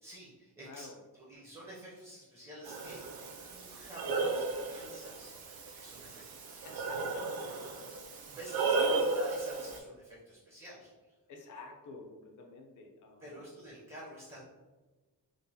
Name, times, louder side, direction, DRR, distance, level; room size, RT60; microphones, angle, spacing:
voice 1, 0.0-0.9 1.1-3.0 3.5-5.3 5.7-6.8 8.3-10.9 13.2-14.4, right 1 dB, 15° right, -6 dB, 0.4 m, -49 dB
voice 2, 0.7-1.0 4.2-4.4 6.0-6.2 6.6-7.5 8.2-8.4 8.7-9.1 11.3-13.5, left 3 dB, 55° left, 1 dB, 0.5 m, -50 dB
Breathing, 2.6-9.8, right 3 dB, 75° right, 0.5 m, -35 dB
3.1 x 2.1 x 2.6 m, 1.2 s
wide cardioid pair, 180°, 36 cm